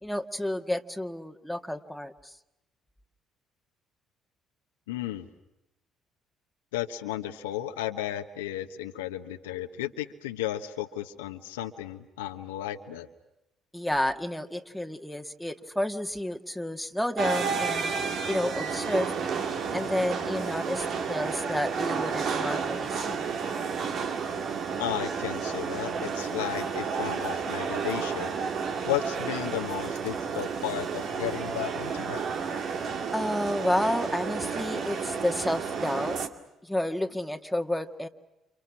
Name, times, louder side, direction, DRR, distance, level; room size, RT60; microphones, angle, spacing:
voice 1, 0.0-2.3 13.7-18.0 18.3-19.1 19.7-23.2 33.1-36.2 36.6-38.1, left 1 dB, ahead, 4 dB, 1.9 m, -30 dB
voice 2, 4.9-5.3 6.7-13.1 24.8-28.3 28.8-32.2, left 12 dB, 85° left, 6 dB, 1.2 m, -34 dB
sound 1, 17.2-36.3, right 6 dB, 60° right, 2.2 m, -31 dB
29.5 x 28.5 x 6.1 m, 0.91 s
hypercardioid pair, 50°, 0 cm